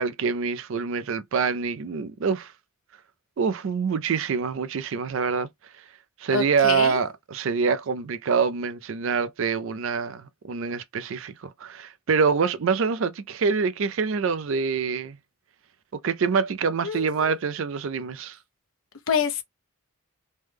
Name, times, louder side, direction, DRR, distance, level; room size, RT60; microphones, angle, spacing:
voice 1, 0.0-2.5 3.4-5.5 6.2-15.2 15.9-18.4, right 5 dB, 60° right, 0.4 m, -25 dB
voice 2, 6.3-7.0 16.8-17.4 19.1-19.4, left 7 dB, 70° left, 0.7 m, -27 dB
3.2 x 2.2 x 3.3 m
head